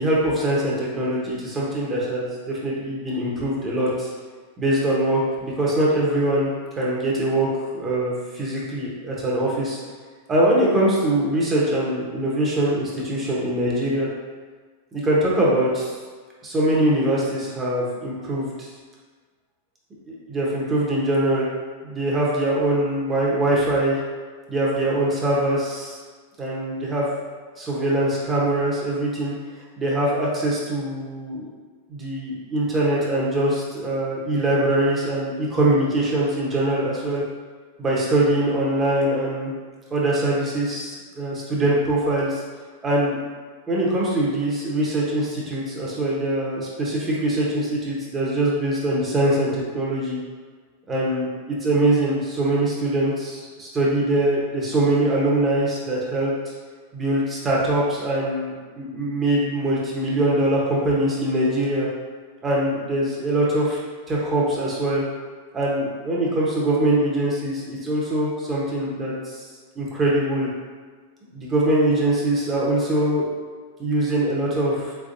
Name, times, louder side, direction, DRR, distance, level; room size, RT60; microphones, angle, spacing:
voice 1, 0.0-4.1 4.6-6.5 6.8-7.5 7.7-9.8 10.3-14.1 14.9-15.9 16.4-18.7 20.1-21.5 21.8-24.0 24.5-26.0 26.4-27.2 27.6-29.3 29.8-31.5 31.9-37.2 37.8-39.5 39.9-42.4 42.8-43.2 43.7-50.2 50.9-56.3 56.9-61.9 62.4-63.8 64.1-65.0 65.5-69.4 69.8-70.5 71.3-73.3 73.8-74.9, right 1 dB, 20° right, -5 dB, 1.0 m, -23 dB
3.4 x 3.3 x 2.6 m, 1.5 s
supercardioid pair, 130°, 0 cm